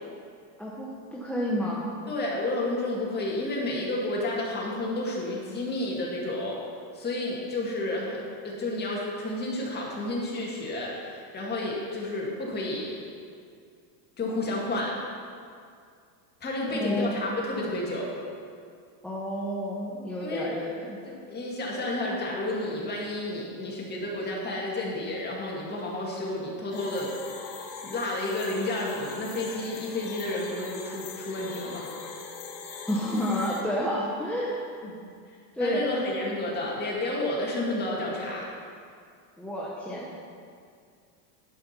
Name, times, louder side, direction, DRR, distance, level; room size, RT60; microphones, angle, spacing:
voice 1, 0.6-1.9 16.7-17.2 19.0-21.0 32.9-34.6 35.5-35.9 39.4-40.1, equal, 5° left, -6 dB, 0.6 m, -30 dB
voice 2, 2.1-6.6 6.9-13.0 14.2-14.9 16.4-18.1 20.2-20.5 21.1-27.1 27.5-31.9 34.8-35.0 35.6-38.5, left 2 dB, 20° left, -4 dB, 2.0 m, -31 dB
sound 1, 26.7-33.6, left 5 dB, 55° left, 1.5 m, -41 dB
11.0 x 5.1 x 5.9 m, 2.2 s
supercardioid pair, 140°, 50 cm